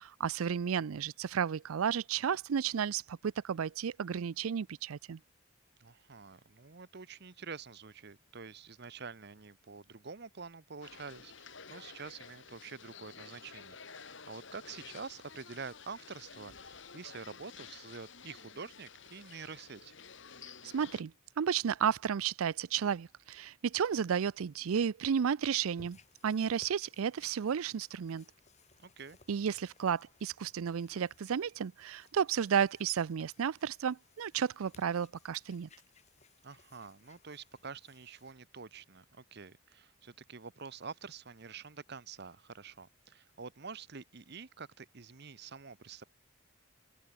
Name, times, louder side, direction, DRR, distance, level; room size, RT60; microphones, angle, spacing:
voice 1, 0.0-5.2 20.6-21.1 21.4-26.0 26.2-28.2 29.3-35.7, right 7 dB, 85° right, 0.4 m, -32 dB
voice 2, 5.8-19.9 28.8-29.2 36.4-46.0, right 5 dB, 50° right, 1.0 m, -47 dB
sound 1, 10.8-21.0, left 6 dB, 60° left, 2.5 m, -52 dB
sound 2, 25.8-38.3, left 5 dB, 35° left, 1.9 m, -64 dB
open air
head